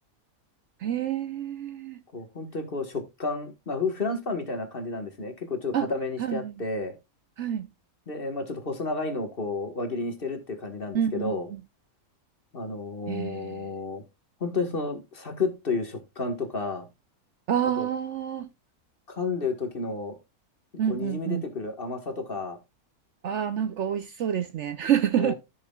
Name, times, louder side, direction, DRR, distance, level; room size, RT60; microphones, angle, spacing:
voice 1, 0.8-2.0 5.7-5.9 6.2-6.6 7.4-7.7 10.9-11.6 13.1-13.7 17.5-18.5 20.8-21.4 23.2-25.3, right 9 dB, 65° right, 0.8 m, -28 dB
voice 2, 2.1-6.9 8.1-11.5 12.5-14.0 14.4-16.9 17.8-17.9 19.1-20.2 20.9-22.6 25.2-25.3, left 3 dB, 40° left, 1.7 m, -31 dB
14.5 x 6.4 x 2.3 m
omnidirectional pair, 1.5 m